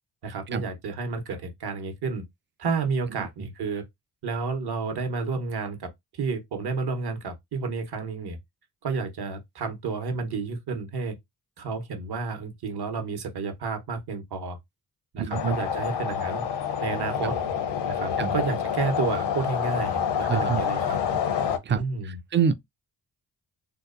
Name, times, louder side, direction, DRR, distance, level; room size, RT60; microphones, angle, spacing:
voice 1, 0.2-2.2 2.6-3.8 4.2-8.4 8.8-11.1 11.6-14.6 15.1-16.4 16.8-17.4 17.9-21.0 21.7-22.2, right 4 dB, 60° right, 0.9 m, -31 dB
voice 2, 15.2-15.6 18.2-18.3 20.3-20.6 21.7-21.8 22.3-22.5, right 7 dB, 30° right, 0.4 m, -25 dB
sound 1, 15.3-21.6, left 8 dB, 70° left, 0.7 m, -27 dB
2.8 x 2.0 x 2.4 m
supercardioid pair, 40°, 44 cm